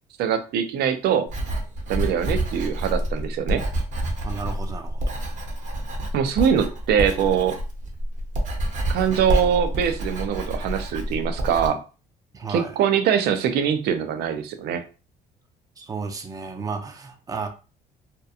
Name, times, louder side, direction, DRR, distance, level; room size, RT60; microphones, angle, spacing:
voice 1, 0.2-1.3 1.9-3.7 6.1-7.6 8.9-11.8 12.5-14.8, right 8 dB, 75° right, 0.5 m, -23 dB
Writing, 1.3-11.7, right 1 dB, 50° right, 0.8 m, -28 dB
voice 2, 4.2-5.2 12.3-12.8 15.8-17.5, right 4 dB, 20° right, 0.5 m, -33 dB
2.8 x 2.2 x 2.4 m
cardioid pair, 110°, 17 cm